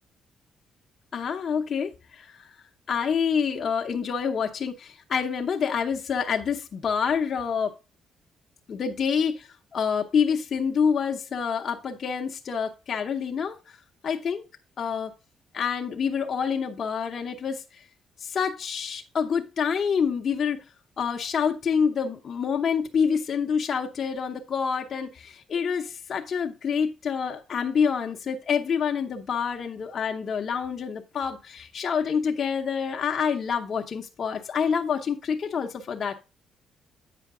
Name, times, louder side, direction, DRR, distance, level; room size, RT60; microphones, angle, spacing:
voice 1, 1.1-2.5 2.9-7.7 8.7-13.8 14.0-14.4 14.8-15.1 15.5-17.6 18.2-20.6 21.0-36.1, left 6 dB, 50° left, 0.9 m, -27 dB
8.4 x 5.1 x 3.7 m
cardioid pair, 90°, 0 cm